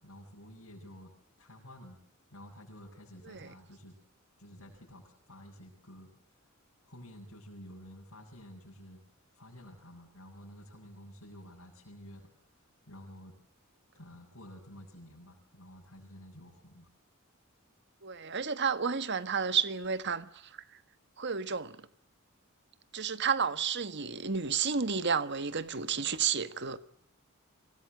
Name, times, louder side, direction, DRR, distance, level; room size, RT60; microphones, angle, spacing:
voice 1, 0.0-2.0 2.3-4.0 4.4-6.5 6.9-9.0 9.3-12.3 12.6-13.4 13.9-16.9, equal, 85° left, 7.8 m, -51 dB
voice 2, 18.0-20.6 21.2-21.8 22.9-26.8, right 6 dB, 55° right, 1.5 m, -31 dB
26.0 x 19.0 x 7.9 m
head